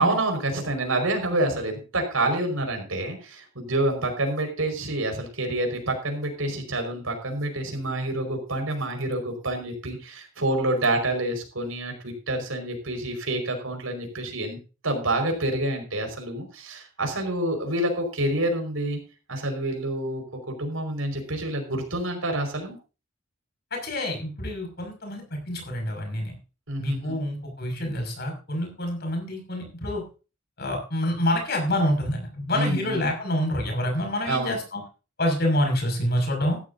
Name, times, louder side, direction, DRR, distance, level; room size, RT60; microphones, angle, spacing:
voice 1, 0.0-14.6 14.8-19.0 19.3-22.8 26.7-27.2 32.5-33.1 34.3-34.6, right 1 dB, 90° right, 4 dB, 5.2 m, -27 dB
voice 2, 23.7-26.3 26.8-30.0 30.6-34.8 35.2-36.6, left 1 dB, 50° left, 3 dB, 6.3 m, -27 dB
15.5 x 13.5 x 2.7 m, 0.33 s
head